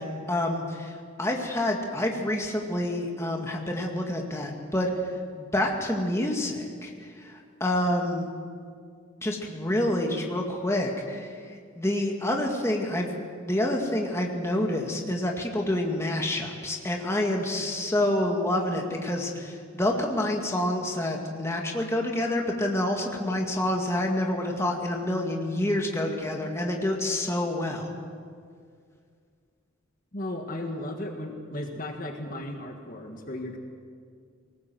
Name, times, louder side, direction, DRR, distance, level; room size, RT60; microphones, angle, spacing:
voice 1, 0.0-4.9 5.4-8.3 9.2-11.4 11.8-27.9, left 1 dB, 15° left, 1 dB, 2.1 m, -28 dB
voice 2, 30.1-33.6, left 1 dB, 40° left, 3 dB, 1.7 m, -35 dB
23.0 x 19.0 x 7.8 m, 2.1 s
head